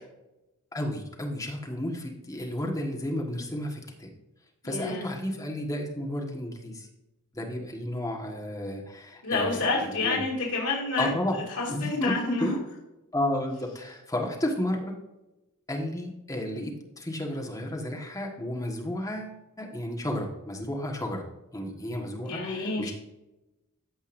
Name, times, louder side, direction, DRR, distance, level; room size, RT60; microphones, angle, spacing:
voice 1, 0.7-4.1 4.6-6.9 7.3-10.3 11.0-11.4 11.7-12.5 13.1-14.9 15.7-21.2 21.5-22.9, left 1 dB, 15° left, 0 dB, 1.5 m, -32 dB
voice 2, 4.6-5.2 9.2-11.1 11.6-12.6 22.2-22.9, left 3 dB, 80° left, -4 dB, 2.4 m, -29 dB
15.0 x 5.3 x 2.6 m, 0.98 s
head